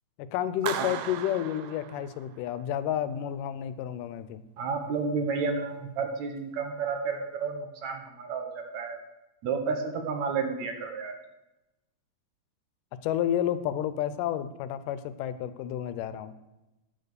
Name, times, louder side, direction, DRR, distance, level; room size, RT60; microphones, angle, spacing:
voice 1, 0.2-4.4 13.0-16.3, left 11 dB, 90° left, 13 dB, 2.2 m, -30 dB
Clapping, 0.7-2.5, right 10 dB, 85° right, 1.5 m, -36 dB
voice 2, 4.6-9.0 9.4-11.1, right 5 dB, 65° right, 4 dB, 2.2 m, -31 dB
9.4 x 6.7 x 6.8 m, 0.97 s
omnidirectional pair, 3.7 m